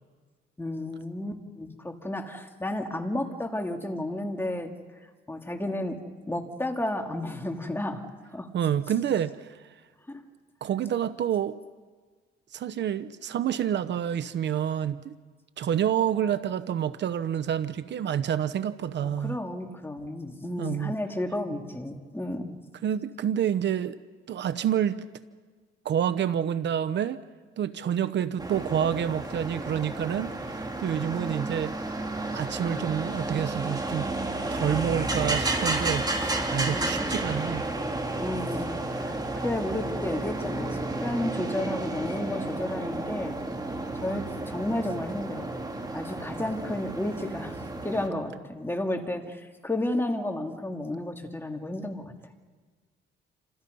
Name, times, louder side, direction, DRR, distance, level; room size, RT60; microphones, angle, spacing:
voice 1, 0.6-4.7 5.3-6.0 6.3-8.0 8.3-8.5 10.1-10.2 19.0-22.6 35.7-36.2 36.7-37.0 38.2-40.7 41.0-43.4 44.0-45.5 45.9-47.6 47.8-52.1, left 1 dB, 10° left, 3 dB, 3.0 m, -32 dB
voice 2, 8.5-9.7 10.6-11.6 12.5-15.1 15.6-19.4 20.6-21.0 22.8-24.0 24.3-25.0 25.8-27.2 27.6-31.8 32.3-34.1 34.5-37.6, right 9 dB, 65° right, 13 dB, 0.9 m, -28 dB
sound 1, 28.4-48.1, right 2 dB, 20° right, 3.3 m, -32 dB
28.5 x 26.5 x 5.5 m, 1.4 s
cardioid pair, 90°, 20 cm